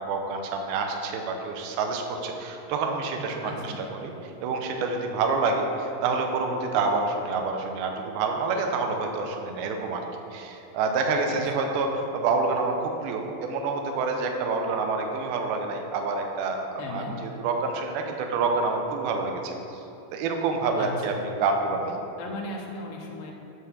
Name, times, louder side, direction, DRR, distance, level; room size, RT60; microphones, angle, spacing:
voice 1, 0.1-4.1 4.4-10.0 10.3-19.5 20.1-22.0, right 4 dB, 80° right, 3 dB, 2.4 m, -27 dB
voice 2, 3.4-3.9 11.2-11.5 16.8-17.2 20.8-21.3 22.2-23.3, left 2 dB, 75° left, -1 dB, 2.2 m, -36 dB
8.3 x 3.9 x 6.8 m, 2.8 s
omnidirectional pair, 4.8 m